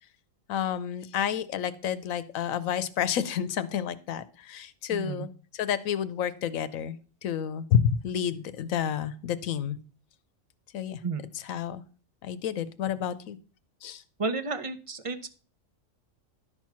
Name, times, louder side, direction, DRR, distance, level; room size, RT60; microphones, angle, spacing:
voice 1, 0.5-7.0 7.2-9.8 10.7-11.0 11.3-11.8 12.2-13.4 13.8-14.0, left 9 dB, 90° left, 14 dB, 1.1 m, -30 dB
voice 2, 4.9-5.3 11.0-11.2 14.2-15.3, right 4 dB, 35° right, 11 dB, 0.6 m, -32 dB
11.5 x 4.5 x 5.8 m, 0.39 s
omnidirectional pair, 1.4 m